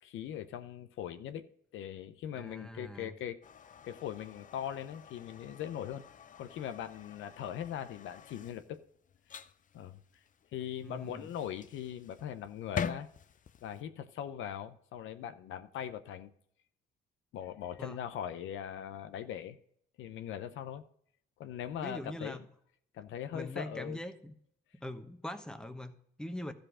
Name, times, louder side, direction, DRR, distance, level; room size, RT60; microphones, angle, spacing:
voice 1, 0.0-1.5 1.7-3.4 3.8-6.0 6.4-8.8 9.7-10.0 10.5-13.1 13.6-16.3 17.3-19.6 20.0-20.8 21.4-22.4 22.9-24.0, left 10 dB, 80° left, 0.7 m, -40 dB
voice 2, 2.4-3.1 10.8-11.3 17.8-18.0 21.8-22.4 23.3-24.3 24.8-26.5, left 1 dB, 5° left, 1.0 m, -42 dB
sound 1, 3.4-13.8, left 7 dB, 40° left, 0.5 m, -45 dB
13.5 x 5.2 x 4.9 m
cardioid pair, 90°, 20 cm